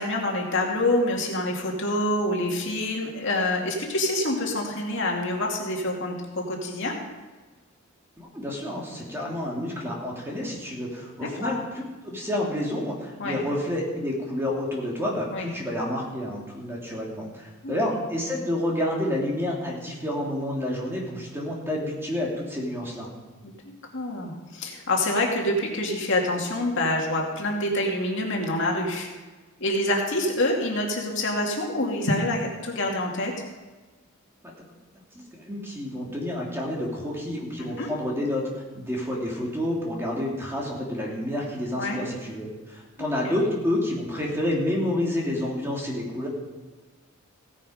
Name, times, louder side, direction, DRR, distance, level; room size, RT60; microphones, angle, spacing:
voice 1, 0.0-6.9 11.4-11.6 13.2-13.4 15.3-15.5 17.6-18.0 23.4-23.5 23.9-29.1 29.6-33.3 37.6-37.9 41.8-42.0 43.0-43.3, left 1 dB, 60° left, 0 dB, 2.4 m, -26 dB
voice 2, 8.2-23.1 34.4-34.5 34.9-35.0 35.3-46.3, left 1 dB, 10° right, -3 dB, 2.9 m, -29 dB
16.5 x 9.7 x 5.1 m, 1.3 s
head